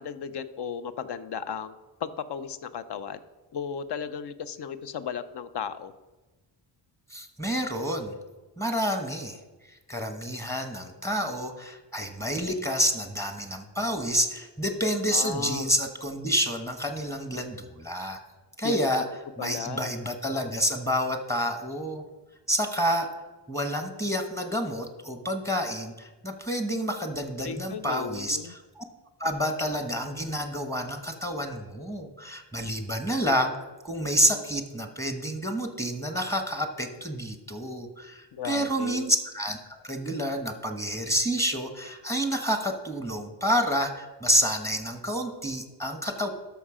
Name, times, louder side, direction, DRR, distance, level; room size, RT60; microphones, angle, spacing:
voice 1, 0.0-1.7 2.0-3.2 3.5-5.9 15.1-15.7 18.6-18.8 19.4-19.9 27.4-28.5 38.3-39.1, left 7 dB, 65° left, 13 dB, 0.7 m, -35 dB
voice 2, 7.1-8.1 8.6-9.4 9.7-18.2 18.6-19.0 19.4-22.1 22.5-23.1 23.5-28.8 29.2-33.6 33.8-46.3, equal, 5° left, 6 dB, 1.1 m, -29 dB
13.0 x 6.0 x 5.0 m, 1.2 s
wide cardioid pair, 125°, 43 cm